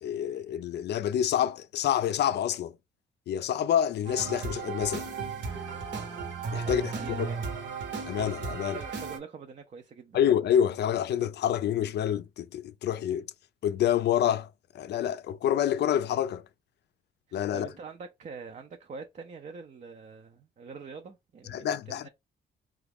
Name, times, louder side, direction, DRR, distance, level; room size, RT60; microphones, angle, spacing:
voice 1, 0.0-2.8 3.3-5.1 6.5-6.9 7.2-7.3 8.0-8.8 10.1-13.3 13.6-14.5 14.7-16.4 17.3-17.7 21.5-22.1, left 10 dB, 60° left, 0.4 m, -27 dB
sound 1, 4.0-9.2, right 5 dB, 65° right, 1.0 m, -35 dB
voice 2, 6.6-7.4 8.7-10.2 17.3-22.1, right 5 dB, 35° right, 0.5 m, -44 dB
3.0 x 2.3 x 3.5 m
cardioid pair, 90°, 20 cm